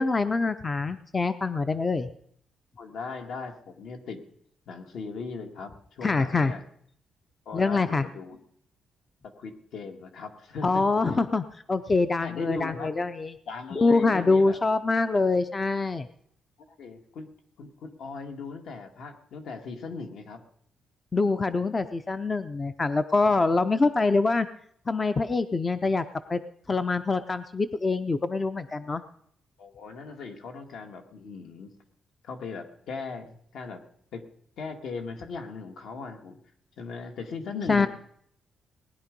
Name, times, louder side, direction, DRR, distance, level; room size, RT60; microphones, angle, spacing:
voice 1, 0.0-2.1 6.0-6.5 7.5-8.1 10.6-13.3 13.7-16.1 21.1-24.5 24.9-26.0 26.3-26.4 26.7-29.0 37.7-37.9, left 3 dB, 20° left, 11 dB, 0.5 m, -25 dB
voice 2, 2.8-4.2 4.7-6.6 7.5-8.4 9.2-10.8 12.2-12.9 13.5-14.6 16.8-17.3 17.6-20.4 29.6-31.7 32.2-33.8 34.1-34.2 34.6-36.4 36.8-37.9, left 4 dB, 65° left, 5 dB, 1.9 m, -38 dB
19.0 x 10.5 x 5.2 m, 0.66 s
cardioid pair, 180°, 0 cm